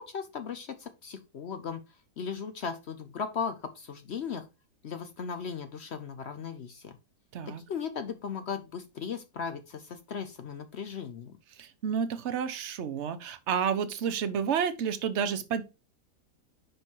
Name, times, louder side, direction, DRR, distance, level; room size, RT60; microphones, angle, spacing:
voice 1, 0.0-1.8 2.2-4.5 4.8-7.0 7.5-11.4, left 6 dB, 60° left, 0.7 m, -37 dB
voice 2, 11.6-15.6, right 7 dB, 50° right, 1.0 m, -30 dB
5.4 x 5.3 x 4.4 m
omnidirectional pair, 1.7 m